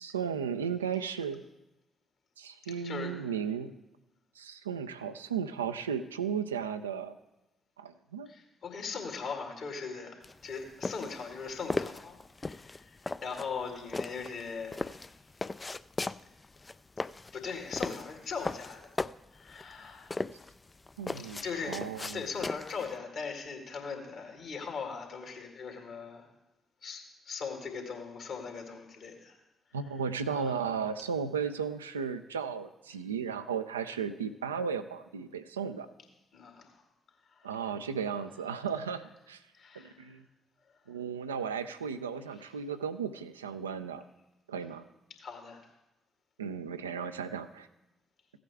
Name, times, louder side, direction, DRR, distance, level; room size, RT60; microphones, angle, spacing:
voice 1, 0.0-1.4 2.4-3.7 4.4-7.1 7.8-8.3 21.0-22.2 29.7-35.9 37.4-39.4 39.8-40.2 40.9-44.0 44.5-44.8 46.4-47.7, right 6 dB, 85° right, 10 dB, 0.4 m, -35 dB
voice 2, 2.7-3.3 8.3-15.0 17.3-19.0 19.3-20.2 21.4-21.8 22.1-26.3 26.8-29.4 30.3-30.5 36.3-36.8 37.3-37.6 39.5-40.1 40.9-41.0 45.2-45.7, left 5 dB, 60° left, 2 dB, 2.2 m, -40 dB
sound 1, 10.2-22.9, left 3 dB, 25° left, 0.3 m, -37 dB
15.5 x 8.6 x 3.5 m, 0.96 s
figure-of-eight pair, 40°, 0 cm